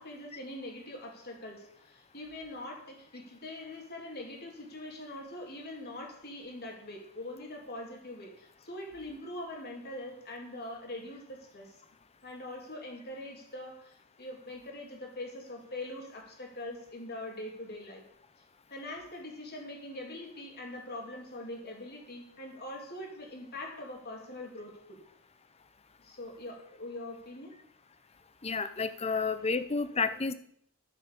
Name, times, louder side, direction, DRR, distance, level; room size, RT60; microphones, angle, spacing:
voice 1, 0.0-11.8 12.2-18.0 18.7-25.0 26.0-27.5 29.1-29.5 29.9-30.2, left 1 dB, 45° left, 0 dB, 3.2 m, -43 dB
voice 2, 28.4-30.3, left 4 dB, 30° left, 12 dB, 0.8 m, -30 dB
12.5 x 7.4 x 6.9 m, 0.67 s
head